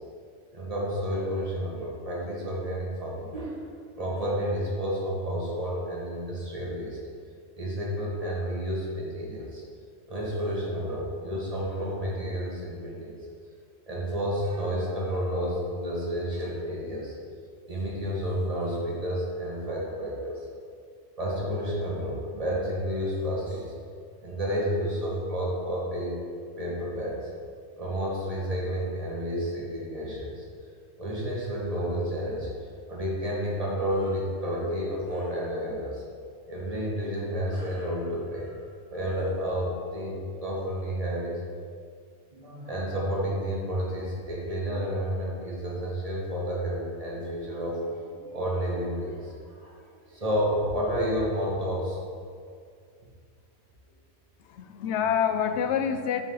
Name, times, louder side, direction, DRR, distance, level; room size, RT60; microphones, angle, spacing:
voice 1, 0.5-7.0 7.6-9.6 10.1-13.1 13.9-17.1 17.7-20.5 21.2-23.7 24.2-26.2 26.6-27.2 27.8-30.4 31.0-32.5 32.9-36.0 36.5-38.6 38.9-41.4 42.3-49.8 50.1-52.0, equal, 30° right, -4 dB, 1.6 m, -30 dB
voice 2, 54.4-56.2, left 8 dB, 70° left, 7 dB, 0.9 m, -27 dB
8.8 x 5.1 x 4.0 m, 2.2 s
omnidirectional pair, 1.3 m